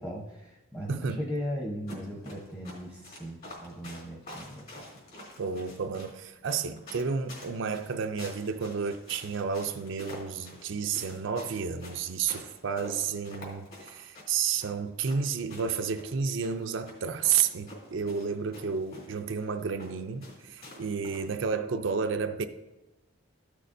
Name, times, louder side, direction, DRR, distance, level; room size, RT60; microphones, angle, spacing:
voice 1, 0.0-4.6, equal, 15° left, 1.0 m, -37 dB
sound 1, 1.9-21.4, left 1 dB, 45° left, 2.9 m, -48 dB
voice 2, 5.4-22.5, right 6 dB, 60° right, 0.4 m, -31 dB
14.0 x 6.5 x 2.6 m
head